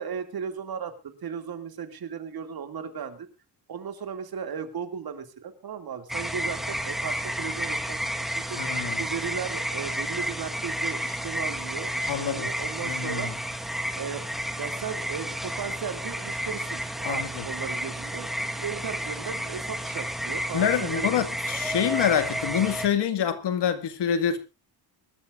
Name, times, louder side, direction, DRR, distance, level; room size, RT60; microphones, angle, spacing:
voice 1, 0.0-3.3 3.7-8.0 8.3-8.6 9.0-13.3 13.9-14.2 14.6-21.1, right 7 dB, 60° right, 2.6 m, -36 dB
sound 1, 6.1-22.9, equal, ahead, 1.4 m, -31 dB
voice 2, 8.6-9.0 12.1-12.5 12.8-13.3 17.0-17.5 20.5-24.4, left 8 dB, 75° left, 2.1 m, -26 dB
24.0 x 13.0 x 2.5 m
cardioid pair, 125°, 41 cm